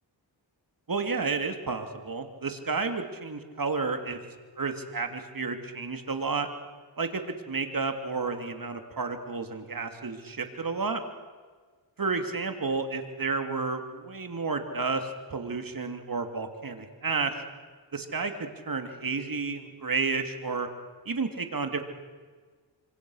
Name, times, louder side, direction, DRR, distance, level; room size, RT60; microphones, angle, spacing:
voice 1, 0.9-4.2 4.6-6.5 7.0-7.2 7.5-11.0 12.0-17.4 17.9-20.7 21.1-21.8, right 4 dB, 45° right, 6 dB, 2.9 m, -31 dB
26.0 x 25.5 x 6.5 m, 1.5 s
cardioid pair, 60°, 46 cm